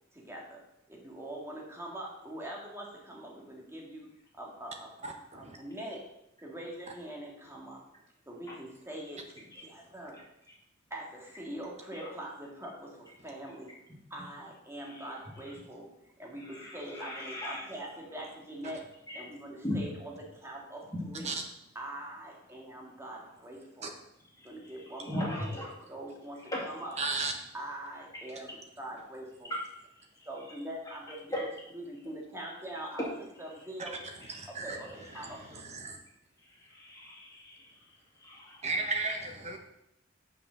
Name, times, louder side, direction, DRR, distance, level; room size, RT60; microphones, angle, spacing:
voice 1, 0.1-0.6 0.9-4.1 4.4-5.1 5.3-6.0 6.4-7.8 8.3-10.2 10.9-13.7 14.1-15.9 16.2-18.8 19.1-21.4 21.8-23.9 24.4-25.6 25.9-27.0 27.5-29.5 30.3-31.4 31.7-34.0 34.5-35.6, right 1 dB, 15° right, -2 dB, 1.9 m, -43 dB
voice 2, 5.0-5.6 21.2-21.3 23.8-23.9 27.0-27.3 34.3-34.8 35.2-35.3 35.6-36.0 38.6-39.6, right 3 dB, 35° right, 4 dB, 1.2 m, -34 dB
voice 3, 16.3-17.6 19.1-19.2 19.6-19.8 20.9-21.0 25.0-25.7 26.5-26.6 30.2-30.3 31.3-31.5 36.7-37.7 38.2-38.6, left 1 dB, 20° left, -4 dB, 2.5 m, -37 dB
6.7 x 5.9 x 6.4 m, 0.82 s
head